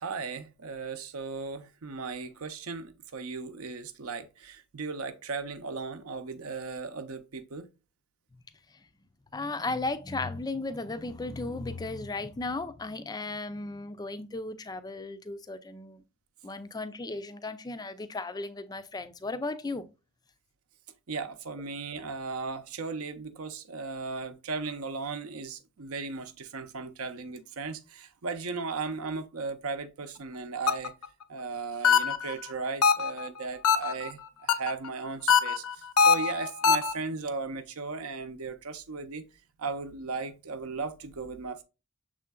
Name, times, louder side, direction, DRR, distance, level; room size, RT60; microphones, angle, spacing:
voice 1, 0.0-7.7 21.1-30.9 31.3-39.2 39.6-41.6, right 4 dB, 75° right, 0.7 m, -36 dB
voice 2, 9.3-16.0 16.4-19.9, left 2 dB, 15° left, 0.4 m, -35 dB
sound 1, 30.7-31.1 31.8-32.3 32.8-33.3 33.6-34.1 34.5-34.9 35.3-36.9, left 6 dB, 80° left, 0.6 m, -22 dB
6.3 x 3.7 x 2.3 m
head